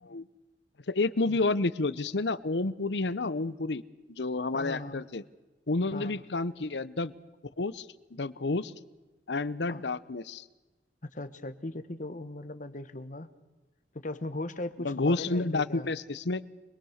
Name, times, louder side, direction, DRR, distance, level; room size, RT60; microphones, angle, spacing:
voice 1, 0.9-3.8 4.1-5.2 5.7-7.1 7.6-8.7 9.3-10.4 14.8-16.4, left 3 dB, 75° left, 17 dB, 0.9 m, -30 dB
voice 2, 4.5-5.1 5.9-6.2 9.7-9.8 11.0-13.3 13.9-15.9, left 2 dB, 45° left, 11 dB, 1.4 m, -38 dB
25.0 x 22.0 x 6.5 m, 1.2 s
head